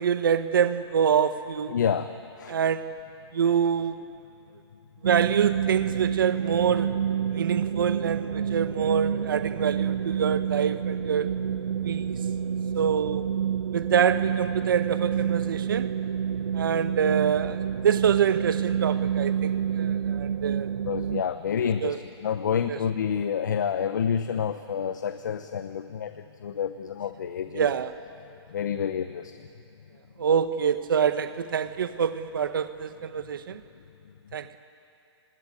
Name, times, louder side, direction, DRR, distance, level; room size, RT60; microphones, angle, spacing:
voice 1, 0.0-1.8 2.5-3.0 3.3-4.0 5.0-7.0 7.3-11.3 11.8-12.2 12.7-13.2 13.7-15.9 16.5-20.7 21.8-22.0 22.7-22.8 27.5-28.0 30.2-33.6 34.3-34.6, right 7 dB, 50° right, 11 dB, 0.9 m, -26 dB
voice 2, 1.7-2.1 2.4-2.5 20.8-22.0 22.2-26.1 26.4-27.7 28.5-29.3, left 7 dB, 40° left, 10 dB, 0.8 m, -28 dB
sound 1, 5.0-21.2, right 8 dB, 85° right, 0.6 m, -28 dB
28.0 x 17.0 x 9.8 m, 2.7 s
hypercardioid pair, 175°, 14 cm